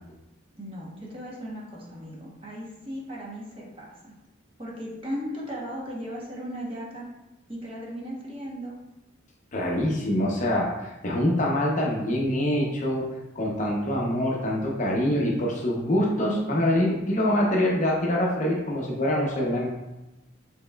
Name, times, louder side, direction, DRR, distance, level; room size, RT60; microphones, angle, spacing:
voice 1, 0.5-4.2 4.6-7.1 7.5-8.8, equal, 30° right, -4 dB, 0.9 m, -37 dB
voice 2, 9.5-13.0 13.4-19.7, left 1 dB, 40° left, -2 dB, 0.7 m, -25 dB
6.4 x 3.1 x 2.2 m, 0.98 s
head